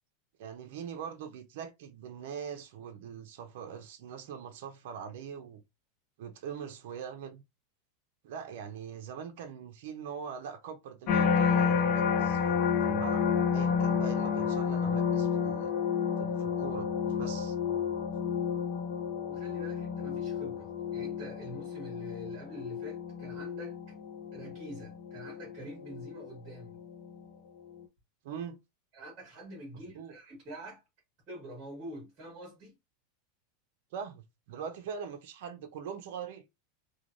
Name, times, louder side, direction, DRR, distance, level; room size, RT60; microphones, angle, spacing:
voice 1, 0.4-5.6 6.2-7.4 8.2-13.3 13.5-15.7 16.2-16.9 17.2-17.6 28.2-28.6 29.9-30.1 33.9-36.4, right 7 dB, 60° right, 0.5 m, -42 dB
sound 1, 11.1-26.3 26.8-27.2, left 6 dB, 35° left, 0.5 m, -30 dB
voice 2, 19.3-23.8 24.3-26.8 28.9-30.8 31.3-32.7, equal, 25° right, 1.4 m, -46 dB
3.1 x 2.2 x 2.5 m
supercardioid pair, 170°, 0 cm